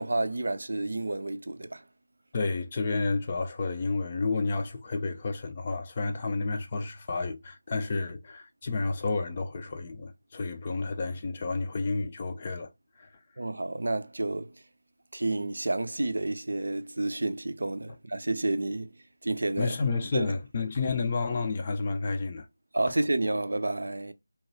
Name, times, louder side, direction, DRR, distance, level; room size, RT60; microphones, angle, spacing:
voice 1, 0.0-1.8 13.4-14.5 15.1-18.9 19.2-19.7 20.1-20.3 22.7-24.1, right 2 dB, 55° right, 0.4 m, -30 dB
voice 2, 2.3-12.7 13.0-13.1 19.6-22.5, left 3 dB, 25° left, 0.4 m, -30 dB
2.9 x 2.2 x 3.0 m
figure-of-eight pair, 165°, 0 cm